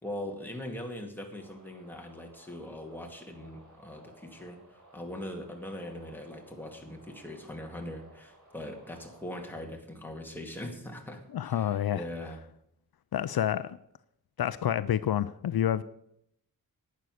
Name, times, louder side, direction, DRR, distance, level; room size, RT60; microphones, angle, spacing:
voice 1, 0.0-4.6 4.9-12.4, left 1 dB, 5° left, 2 dB, 2.2 m, -41 dB
sound 1, 1.4-9.7, right 2 dB, 50° right, 4.3 m, -57 dB
voice 2, 11.3-12.0 13.1-13.8 14.4-15.8, left 10 dB, 80° left, 15 dB, 0.5 m, -28 dB
11.0 x 9.6 x 6.5 m, 0.74 s
wide cardioid pair, 110°, 36 cm